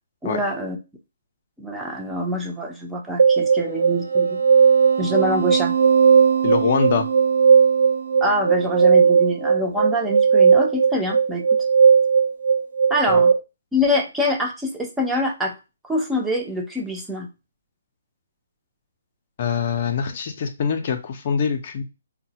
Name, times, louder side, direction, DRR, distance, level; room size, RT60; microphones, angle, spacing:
voice 1, 0.2-0.8 1.6-4.4 5.0-5.7 8.2-11.4 12.9-13.3 13.7-15.6 15.8-17.3, left 1 dB, 5° right, 1 dB, 0.5 m, -25 dB
sound 1, 3.2-13.3, right 6 dB, 65° right, 0.6 m, -17 dB
voice 2, 6.4-7.1 13.1-13.2 19.4-21.8, left 6 dB, 45° left, 6 dB, 0.5 m, -23 dB
3.8 x 2.1 x 2.7 m, 0.28 s
figure-of-eight pair, 135°, 0 cm